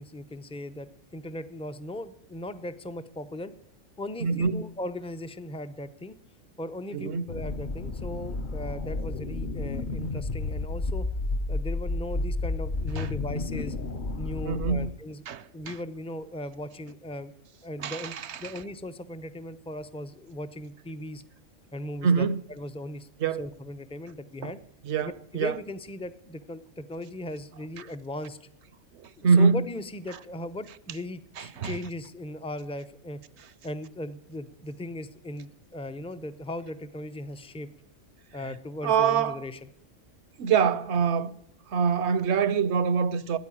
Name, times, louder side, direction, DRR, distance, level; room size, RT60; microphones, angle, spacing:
voice 1, 0.0-3.5 4.0-6.2 6.6-11.1 11.5-13.7 14.2-15.2 15.5-17.3 17.6-18.1 18.4-21.2 21.7-23.1 23.4-24.6 25.0-28.4 29.2-33.2 33.6-37.7 38.3-39.7, left 1 dB, 5° left, 0.5 m, -38 dB
voice 2, 4.2-4.6 6.9-7.2 13.0-13.1 14.4-14.9 15.3-15.8 17.8-18.4 22.0-22.4 23.2-23.4 24.4-24.5 24.9-25.5 29.2-29.6 31.4-31.8 38.8-39.4 40.4-41.3 41.7-43.4, right 6 dB, 65° right, 1.0 m, -25 dB
sound 1, 7.3-14.9, left 2 dB, 45° left, 0.9 m, -31 dB
13.5 x 9.4 x 10.0 m
omnidirectional pair, 1.3 m